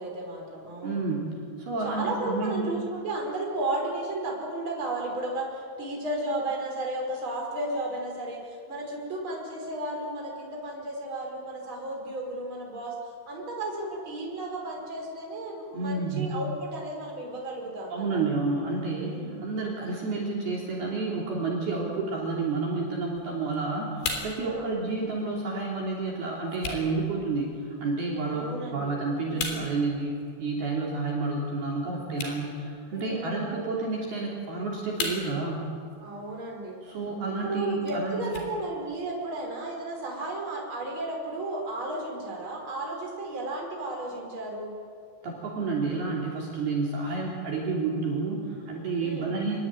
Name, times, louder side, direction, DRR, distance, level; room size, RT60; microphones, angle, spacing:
voice 1, 0.0-1.0 1.8-12.9 13.3-18.2 19.0-19.5 24.4-24.8 28.2-28.9 29.3-29.7 32.9-33.7 36.0-36.8 37.3-44.7 49.0-49.3, right 2 dB, 25° right, 0 dB, 5.6 m, -34 dB
voice 2, 0.8-1.3 1.6-2.6 15.7-16.4 17.9-23.9 24.2-35.6 36.9-38.4 45.2-49.6, right 3 dB, 55° right, -3 dB, 5.1 m, -30 dB
sound 1, 23.1-39.2, left 4 dB, 60° left, 5.7 m, -42 dB
27.0 x 21.5 x 9.2 m, 2.3 s
omnidirectional pair, 5.7 m